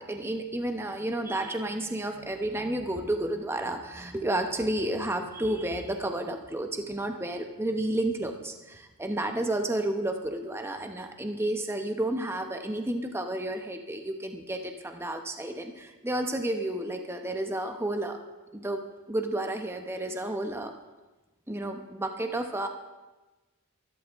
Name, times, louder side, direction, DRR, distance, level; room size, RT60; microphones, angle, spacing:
voice 1, 0.0-18.2 18.5-18.8 19.1-20.7 21.5-22.7, right 1 dB, 10° right, 5 dB, 0.8 m, -31 dB
23.5 x 12.0 x 3.5 m, 1.1 s
head